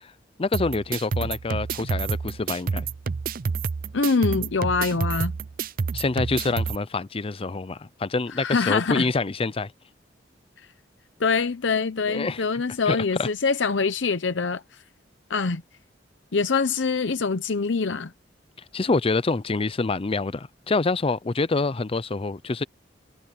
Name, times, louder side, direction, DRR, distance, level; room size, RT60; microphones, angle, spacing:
voice 1, 0.4-2.9 5.9-9.7 12.1-12.4 12.9-13.3 18.7-22.6, left 3 dB, 30° left, 0.6 m, -26 dB
sound 1, 0.5-6.8, right 5 dB, 50° right, 0.5 m, -29 dB
voice 2, 3.9-5.3 8.3-9.0 10.6-10.7 11.2-14.8 15.3-15.6 16.3-18.1, left 4 dB, 75° left, 0.7 m, -24 dB
head